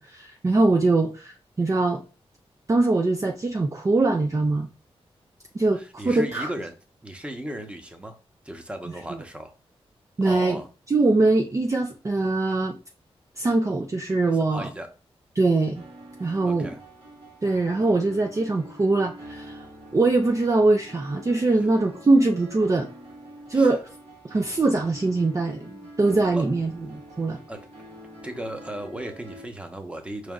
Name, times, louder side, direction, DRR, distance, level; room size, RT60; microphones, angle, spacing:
voice 1, 0.0-2.0 2.7-4.7 5.5-6.5 9.1-9.2 10.2-10.6 10.9-12.8 13.4-14.7 15.4-15.8 16.2-16.7 17.4-19.6 19.9-22.9 23.5-23.8 24.2-27.4, right 2 dB, 30° right, 3 dB, 0.5 m, -22 dB
voice 2, 5.7-6.7 7.0-8.2 8.4-9.5 10.2-10.7 14.5-14.9 16.5-16.8 23.5-23.7 26.3-26.5 27.5-27.6 28.2-30.3, right 1 dB, 10° right, 5 dB, 0.9 m, -36 dB
sound 1, 15.7-29.5, equal, 75° right, 1.7 m, -45 dB
5.1 x 3.2 x 2.4 m, 0.34 s
cardioid pair, 70°, 11 cm